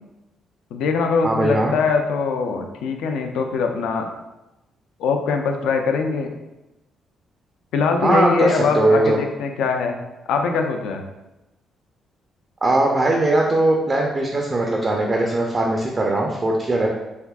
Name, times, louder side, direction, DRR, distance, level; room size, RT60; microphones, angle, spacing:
voice 1, 0.7-4.1 5.0-6.3 7.7-10.0 10.3-11.0, left 5 dB, 85° left, 4 dB, 0.3 m, -22 dB
voice 2, 1.2-1.7 8.0-9.2 12.6-16.9, right 2 dB, 35° right, 0 dB, 0.4 m, -20 dB
3.4 x 2.6 x 2.3 m, 0.97 s
cardioid pair, 90°, 0 cm